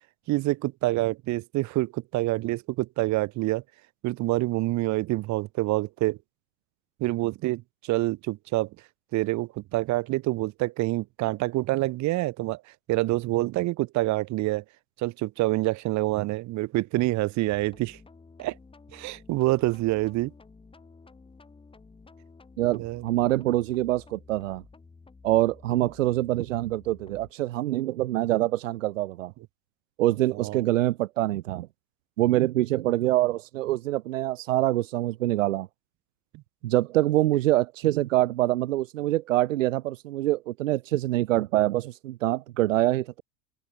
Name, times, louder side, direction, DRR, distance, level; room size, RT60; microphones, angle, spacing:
voice 1, 0.3-3.6 4.0-6.2 7.0-8.7 9.1-12.6 12.9-14.6 15.0-18.0 18.4-18.6 18.9-20.3 22.7-23.0 30.3-30.6 36.3-36.4, right 19 dB, 45° right, 1.9 m, -27 dB
sound 1, 17.5-27.3, left 4 dB, 15° left, 3.5 m, -52 dB
voice 2, 22.6-24.6 25.2-29.3 30.0-31.7 32.2-35.7 36.6-43.2, right 16 dB, 80° right, 0.7 m, -25 dB
open air
hypercardioid pair, 90°, 38 cm